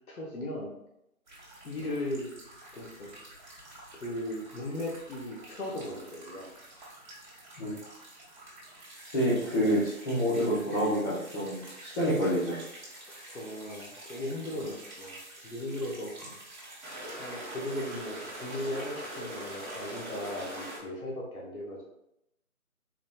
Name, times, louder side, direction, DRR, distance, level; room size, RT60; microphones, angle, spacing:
voice 1, 0.1-0.7 1.6-2.3 2.7-3.1 3.9-6.5 13.2-16.1 17.2-21.8, left 1 dB, 75° left, -3 dB, 1.1 m, -37 dB
sound 1, 1.3-20.8, right 1 dB, 30° right, 1.0 m, -45 dB
voice 2, 9.1-12.6, equal, 35° left, -12 dB, 1.2 m, -28 dB
3.9 x 3.3 x 2.3 m, 0.81 s
figure-of-eight pair, 160°, 43 cm